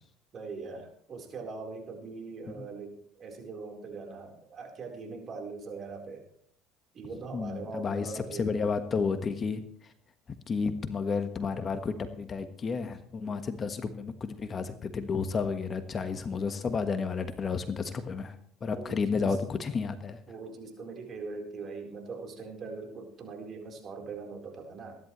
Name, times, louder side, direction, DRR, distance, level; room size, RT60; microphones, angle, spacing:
voice 1, 0.3-6.2 6.9-8.6 13.2-13.4 18.7-19.4 20.3-25.0, right 4 dB, 45° right, 2 dB, 4.1 m, -41 dB
voice 2, 7.3-9.6 10.5-18.3 18.6-20.2, left 5 dB, 35° left, 9 dB, 1.4 m, -31 dB
22.5 x 11.0 x 3.2 m, 0.62 s
hypercardioid pair, 80°, 0 cm